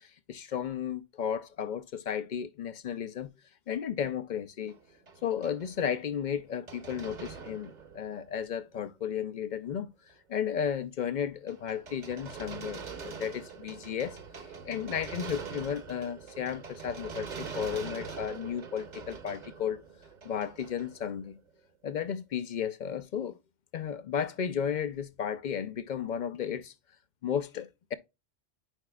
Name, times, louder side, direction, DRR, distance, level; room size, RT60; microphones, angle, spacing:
voice 1, 0.0-3.3 3.7-4.7 5.2-9.9 10.3-14.2 14.6-19.8 20.2-21.4 21.8-23.4 23.7-26.7 27.2-27.9, left 8 dB, 60° left, 0.5 m, -34 dB
sound 1, 4.7-8.4 8.8-8.9 9.6-9.7 10.1-10.4 11.1-21.5, right 6 dB, 45° right, 0.9 m, -44 dB
8.9 x 4.9 x 2.2 m
omnidirectional pair, 1.2 m